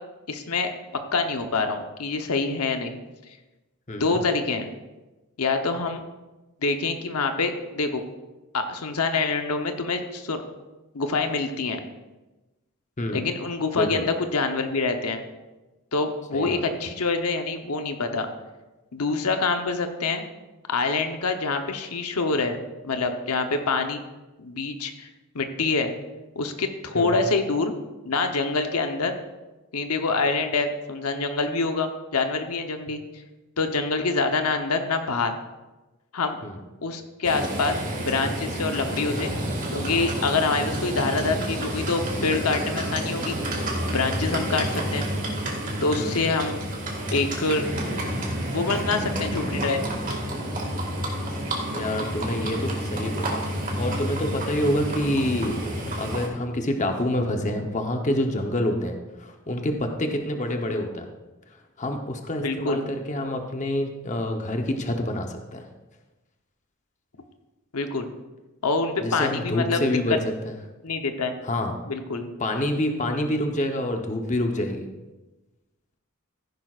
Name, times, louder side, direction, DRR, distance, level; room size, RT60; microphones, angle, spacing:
voice 1, 0.3-0.7 1.1-3.0 4.0-4.7 5.4-6.0 6.6-8.0 8.5-10.4 10.9-11.8 13.1-15.2 15.9-18.3 18.9-20.2 20.7-22.6 22.8-24.0 24.4-25.1 25.3-25.9 26.4-27.7 28.0-29.1 29.7-33.0 33.6-35.3 36.1-36.4 36.8-39.3 39.7-43.4 43.9-45.0 45.8-46.6 47.1-47.7 48.5-49.8 62.4-62.8 67.7-68.1 68.6-69.8 70.8-71.3 71.9-72.3, left 3 dB, 85° left, 6 dB, 0.9 m, -26 dB
voice 2, 3.9-4.2 13.0-13.2 13.7-14.1 16.3-16.6 26.9-27.3 36.4-36.6 44.3-44.6 46.0-46.2 51.7-53.4 53.8-61.1 61.8-65.7 69.0-70.2 70.4-70.5 71.4-71.8 72.4-74.9, left 1 dB, 35° left, 4 dB, 0.9 m, -27 dB
Livestock farm animals working animals, 37.2-56.3, right 1 dB, 40° right, 2.0 m, -29 dB
15.0 x 10.5 x 2.5 m, 1.1 s
head